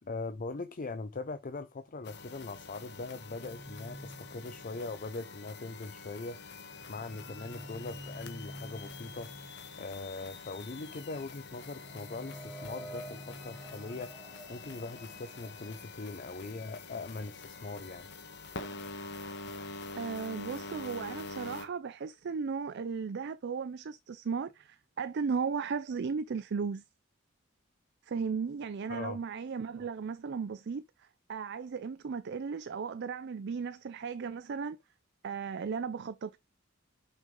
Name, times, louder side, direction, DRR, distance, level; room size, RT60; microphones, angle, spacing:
voice 1, 0.0-6.4 6.9-9.3 9.8-14.1 14.5-18.1 28.9-29.2, left 3 dB, 40° left, 0.6 m, -41 dB
sound 1, 1.9-5.1 5.6-15.8, equal, 5° left, 0.9 m, -50 dB
sound 2, 2.0-21.7, left 3 dB, 60° left, 1.2 m, -46 dB
voice 2, 19.9-26.8 28.1-30.8 31.3-34.8 35.2-36.4, right 5 dB, 55° right, 0.4 m, -36 dB
6.0 x 5.4 x 3.7 m
head